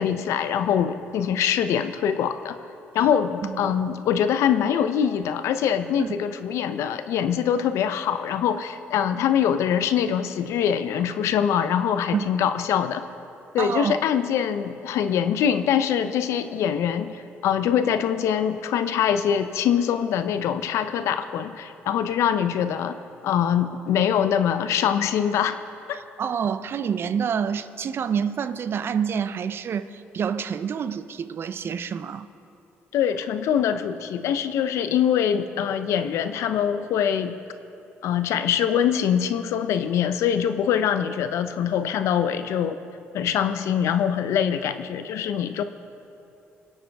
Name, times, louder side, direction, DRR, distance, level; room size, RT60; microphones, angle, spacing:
voice 1, 0.0-2.6 2.9-13.1 13.5-23.0 23.2-25.6 25.9-26.0 32.9-37.4 38.0-42.8 43.1-45.6, left 8 dB, 75° left, 10 dB, 0.6 m, -23 dB
voice 2, 3.4-3.7 6.0-6.1 12.1-12.3 13.6-14.0 26.2-32.3, right 7 dB, 50° right, 13 dB, 0.6 m, -27 dB
25.0 x 8.7 x 3.5 m, 2.7 s
cardioid pair, 80°, 5 cm